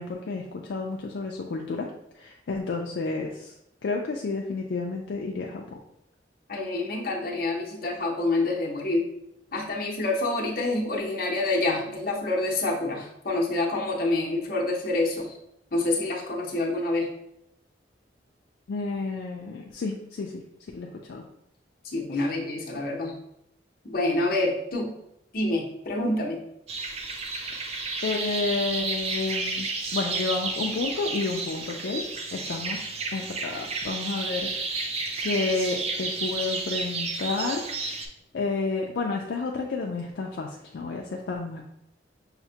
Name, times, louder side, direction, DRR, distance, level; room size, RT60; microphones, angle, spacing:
voice 1, 0.0-1.9 2.2-3.5 3.8-5.8 18.7-20.4 20.7-21.2 27.5-27.7 28.0-32.0 32.3-34.8 35.2-37.6 38.3-41.6, left 3 dB, 70° left, 0 dB, 0.4 m, -31 dB
voice 2, 6.5-9.0 9.5-15.3 15.7-17.1 21.8-23.2 23.8-24.9 25.3-26.4, left 2 dB, 50° left, -1 dB, 0.7 m, -27 dB
sound 1, 26.7-38.1, right 3 dB, 35° right, 0.4 m, -32 dB
5.7 x 2.1 x 2.8 m, 0.80 s
head